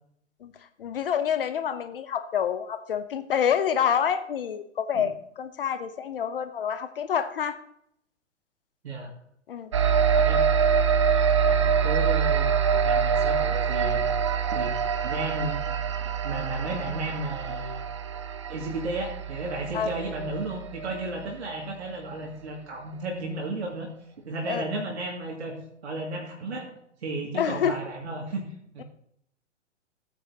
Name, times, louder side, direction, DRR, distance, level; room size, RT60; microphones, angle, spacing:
voice 1, 0.8-7.6 9.5-9.7 10.0-10.2 19.7-19.9 24.5-24.6 27.3-27.8, left 8 dB, 45° left, 10 dB, 0.9 m, -27 dB
sound 1, 9.7-21.5, right 6 dB, 25° right, 0.4 m, -25 dB
voice 2, 11.4-14.1 14.5-17.8 18.5-23.9 24.2-25.6 25.8-26.7 27.0-28.4 28.7-28.8, right 2 dB, 60° right, 0 dB, 2.3 m, -34 dB
16.5 x 9.1 x 2.8 m, 0.71 s
figure-of-eight pair, 115°, 37 cm